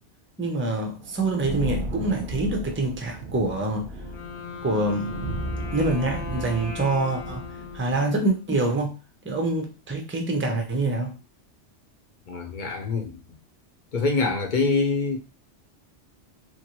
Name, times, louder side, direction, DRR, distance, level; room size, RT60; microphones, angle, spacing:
voice 1, 0.4-3.9 4.6-5.1 5.7-7.5 7.7-9.0 9.2-11.1, right 2 dB, 20° right, 0.4 m, -25 dB
sound 1, 1.0-7.9, right 2 dB, 50° right, 0.8 m, -35 dB
Wind instrument woodwind instrument, 3.9-8.8, left 7 dB, 75° left, 1.0 m, -39 dB
voice 2, 12.3-13.2 13.9-15.2, left 3 dB, 50° left, 0.8 m, -25 dB
3.1 x 2.5 x 2.9 m
omnidirectional pair, 1.2 m